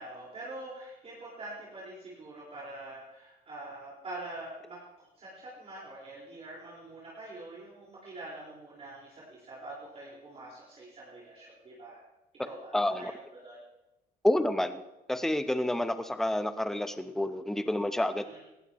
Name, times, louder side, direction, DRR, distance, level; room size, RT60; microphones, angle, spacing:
voice 1, 0.0-12.0 12.4-13.6 18.2-18.4, right 2 dB, 35° right, -6 dB, 4.5 m, -45 dB
voice 2, 12.7-13.1 14.2-14.8 15.1-18.2, left 1 dB, ahead, 10 dB, 0.7 m, -29 dB
18.5 x 15.0 x 3.0 m, 0.96 s
cardioid pair, 110°, 17 cm